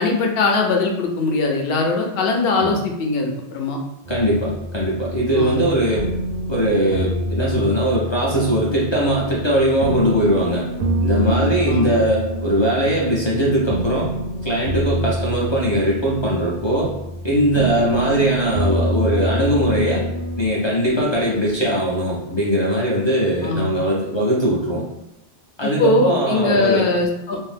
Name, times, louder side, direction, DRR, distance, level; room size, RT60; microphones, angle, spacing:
voice 1, 0.0-3.8 5.3-5.6 11.7-11.9 23.4-23.7 25.6-27.4, left 3 dB, 65° left, 1 dB, 0.7 m, -21 dB
sound 1, 4.0-20.5, right 1 dB, 75° right, 0.8 m, -26 dB
voice 2, 4.1-6.1 6.5-10.6 11.0-14.1 14.4-16.9 17.2-20.1 20.4-24.8 25.6-26.9, equal, 40° left, -5 dB, 0.4 m, -20 dB
2.6 x 2.0 x 3.2 m, 0.85 s
omnidirectional pair, 1.1 m